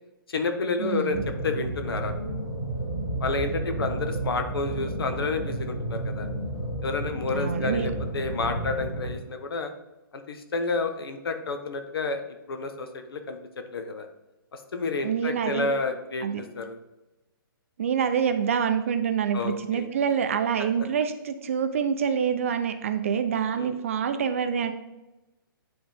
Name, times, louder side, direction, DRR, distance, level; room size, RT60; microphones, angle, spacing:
voice 1, 0.3-2.1 3.2-6.3 6.8-9.7 10.1-12.2 12.5-13.4 13.7-14.1 14.5-16.8 19.3-19.9 23.5-23.7, left 3 dB, 85° left, 7 dB, 1.2 m, -30 dB
voice 2, 0.8-1.2 7.3-7.9 15.0-15.7 16.2-16.4 17.8-24.7, right 7 dB, 35° right, 8 dB, 0.5 m, -26 dB
sound 1, 1.1-9.1, right 1 dB, 60° left, 2.5 m, -32 dB
9.8 x 3.9 x 3.5 m, 1.0 s
hypercardioid pair, 175°, 12 cm